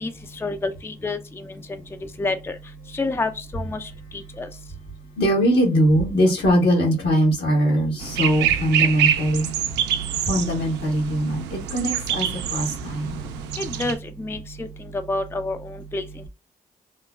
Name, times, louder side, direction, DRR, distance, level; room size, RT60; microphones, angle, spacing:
voice 1, 0.0-1.2 1.7-1.8 2.2-2.5 2.9-4.5 13.6-14.7 14.9-16.0, left 2 dB, 15° left, 0.4 m, -28 dB
voice 2, 5.2-9.5 10.2-13.2, equal, 75° left, 1.4 m, -21 dB
sound 1, 8.0-13.9, right 9 dB, 85° right, 0.4 m, -26 dB
3.0 x 2.1 x 2.3 m
hypercardioid pair, 45°, 17 cm